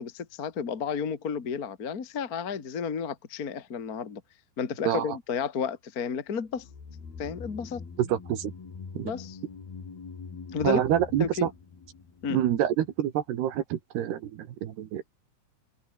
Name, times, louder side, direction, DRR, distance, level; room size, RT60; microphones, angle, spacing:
voice 1, 0.0-4.2 4.6-6.7 7.2-7.8 9.0-9.4 10.5-10.8 11.2-11.5 12.2-12.4, left 6 dB, 70° left, 0.8 m, -32 dB
voice 2, 4.8-5.2 8.0-8.5 8.9-9.1 10.6-11.5 12.3-15.1, right 11 dB, 65° right, 3.2 m, -27 dB
sound 1, 6.5-12.9 13.2-13.3, left 5 dB, 50° left, 7.5 m, -44 dB
omnidirectional pair, 5.9 m